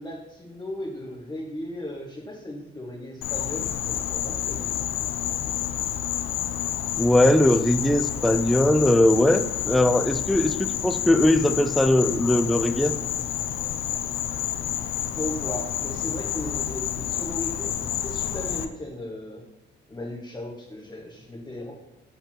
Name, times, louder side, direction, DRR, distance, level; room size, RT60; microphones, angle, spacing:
voice 1, 0.0-4.8 6.6-6.7 15.2-19.4 19.9-21.7, left 1 dB, 20° left, -4 dB, 1.4 m, -36 dB
Insect, 3.2-18.6, left 11 dB, 85° left, 0.6 m, -29 dB
voice 2, 7.0-12.9, left 1 dB, ahead, 10 dB, 0.4 m, -20 dB
5.5 x 4.5 x 5.8 m, 1.0 s
cardioid pair, 90°, 20 cm